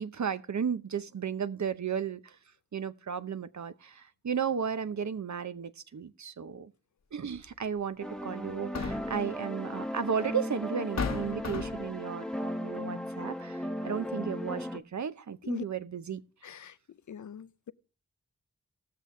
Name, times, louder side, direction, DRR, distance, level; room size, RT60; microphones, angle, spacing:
voice 1, 0.0-2.4 2.7-6.7 7.1-16.2, right 7 dB, 75° right, 0.7 m, -34 dB
sound 1, 7.3-7.5 8.5-9.3 10.3-10.4 11.0-12.0, left 5 dB, 65° left, 0.9 m, -35 dB
sound 2, 8.0-14.8, equal, 5° left, 0.7 m, -36 dB
voice 2, 16.4-17.7, left 7 dB, 80° left, 0.5 m, -42 dB
19.0 x 6.8 x 3.7 m
wide cardioid pair, 90°, 29 cm